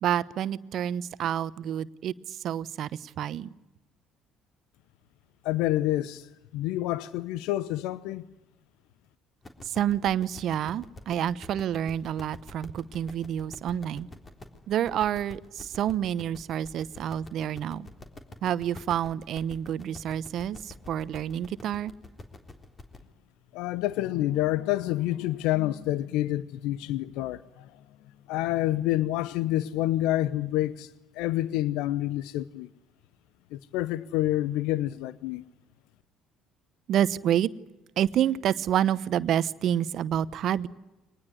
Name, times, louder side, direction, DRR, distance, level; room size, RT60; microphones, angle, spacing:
voice 1, 0.0-3.5 9.6-14.1 14.7-17.9 18.4-21.9 36.9-37.5 38.0-40.7, right 10 dB, 60° right, 0.9 m, -28 dB
voice 2, 5.4-6.3 6.5-8.2 23.5-27.7 28.3-30.9 31.1-32.7 33.5-35.4, left 14 dB, 70° left, 0.8 m, -28 dB
sound 1, 9.4-23.0, left 2 dB, 25° left, 3.6 m, -47 dB
24.5 x 19.5 x 9.8 m
hypercardioid pair, 60°, 0 cm